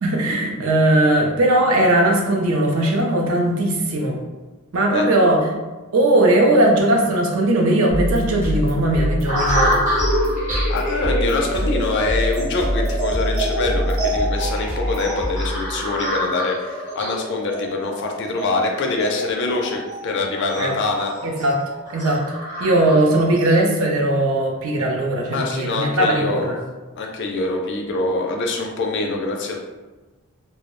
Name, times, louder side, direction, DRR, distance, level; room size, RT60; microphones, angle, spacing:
voice 1, 0.0-4.2 4.7-5.5 5.9-9.8 20.6-20.7 21.2-21.6 21.9-22.2 22.6-26.6, right 1 dB, 65° right, 1 dB, 0.5 m, -18 dB
sound 1, 7.9-16.1, equal, 10° right, 0.5 m, -25 dB
sound 2, 9.3-23.6, equal, 35° right, 0.8 m, -27 dB
voice 2, 10.7-21.1 25.3-26.5 27.0-29.6, left 3 dB, 50° left, 2 dB, 0.3 m, -24 dB
2.2 x 2.0 x 2.9 m, 1.2 s
head